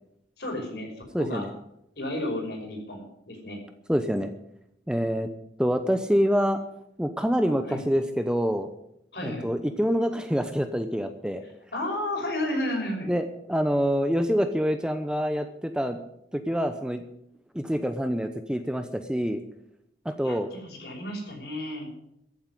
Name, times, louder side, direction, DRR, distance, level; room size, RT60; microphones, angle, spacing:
voice 1, 0.4-1.5 2.0-3.6 7.6-7.8 9.1-9.5 11.7-13.1 20.2-21.9, left 1 dB, 60° left, 1 dB, 5.7 m, -32 dB
voice 2, 1.1-1.5 3.9-4.3 4.9-5.3 5.6-6.6 7.0-8.7 9.2-11.4 13.1-16.0 16.3-17.0 17.5-19.4 20.0-20.5, equal, 5° right, 8 dB, 0.8 m, -26 dB
14.5 x 8.1 x 9.8 m, 0.78 s
head